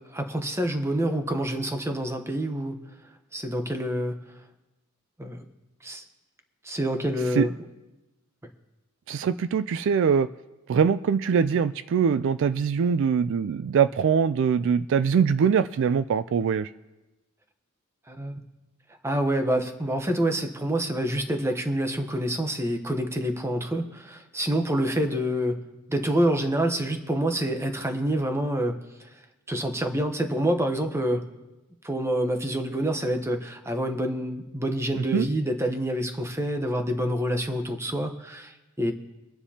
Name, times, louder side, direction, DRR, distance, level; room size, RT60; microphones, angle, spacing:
voice 1, 0.0-2.8 3.3-4.1 5.2-5.4 5.8-6.0 6.6-7.5 18.1-18.3 19.0-25.6 25.9-29.1 29.5-31.2 31.8-38.9, right 1 dB, 10° right, 5 dB, 0.9 m, -27 dB
voice 2, 9.1-10.3 10.7-16.7 34.9-35.3, right 6 dB, 60° right, 13 dB, 0.3 m, -23 dB
24.5 x 9.8 x 2.8 m, 1.1 s
head